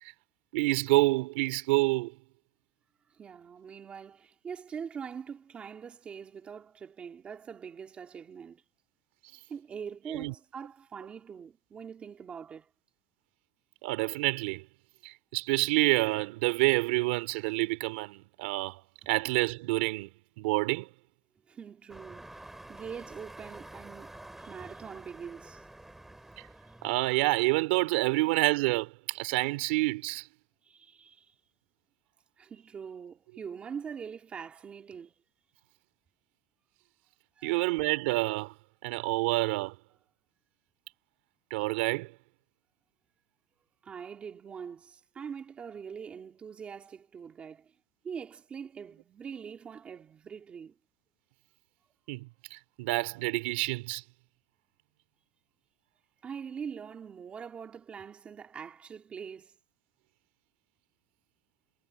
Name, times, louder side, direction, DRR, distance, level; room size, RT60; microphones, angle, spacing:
voice 1, 0.5-2.1 10.1-10.3 13.8-14.6 15.0-18.8 19.1-20.1 20.4-20.9 26.8-30.3 37.4-38.5 38.8-39.7 41.5-42.1 52.1-54.0, right 22 dB, 80° right, 3.0 m, -28 dB
voice 2, 3.1-8.6 9.5-12.7 21.5-25.6 30.6-31.3 32.4-35.1 37.4-37.7 43.8-47.7 48.0-50.7 56.2-59.5, right 7 dB, 20° right, 2.7 m, -43 dB
sound 1, 21.9-27.2, right 1 dB, 5° right, 5.4 m, -48 dB
cardioid pair, 170°, 6 cm